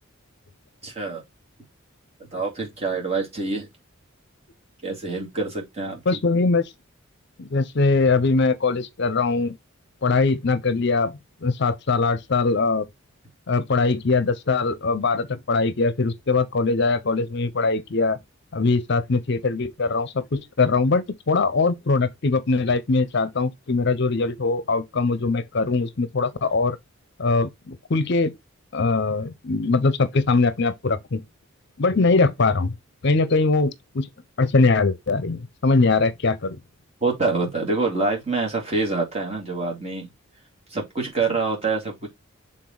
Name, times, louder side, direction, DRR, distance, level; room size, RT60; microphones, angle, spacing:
voice 1, 0.8-1.2 2.3-3.7 4.8-6.0 37.0-40.1 40.7-42.1, right 3 dB, 30° right, 2.5 m, -26 dB
voice 2, 6.1-6.7 7.4-9.6 10.0-12.9 13.5-18.2 18.5-26.8 27.2-28.3 28.7-31.2 31.8-32.7 33.0-34.1 34.4-36.6, left 3 dB, 50° left, 0.6 m, -22 dB
6.6 x 3.8 x 3.8 m
head